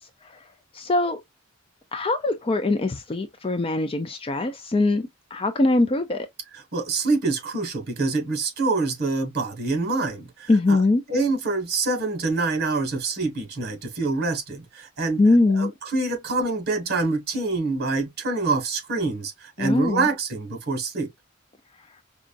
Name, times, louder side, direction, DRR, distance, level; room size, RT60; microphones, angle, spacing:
voice 1, 0.7-1.2 1.9-6.3 10.5-11.0 15.2-15.7 19.6-20.1, left 2 dB, 25° left, 0.5 m, -22 dB
voice 2, 6.5-10.8 11.1-15.2 15.6-21.1, right 3 dB, 50° right, 1.6 m, -26 dB
5.0 x 2.4 x 2.5 m
head